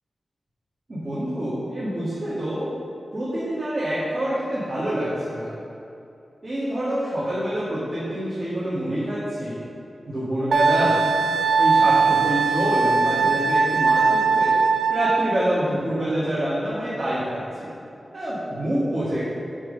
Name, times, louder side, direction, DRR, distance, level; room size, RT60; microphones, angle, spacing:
voice 1, 0.9-2.8 3.1-5.5 6.4-9.6 10.1-11.0 11.6-14.6 14.9-17.7 18.1-19.2, equal, 45° right, -10 dB, 1.8 m, -26 dB
Wind instrument woodwind instrument, 10.5-15.4, right 5 dB, 85° right, 0.3 m, -20 dB
7.5 x 3.6 x 6.6 m, 2.7 s
wide cardioid pair, 85°, 0 cm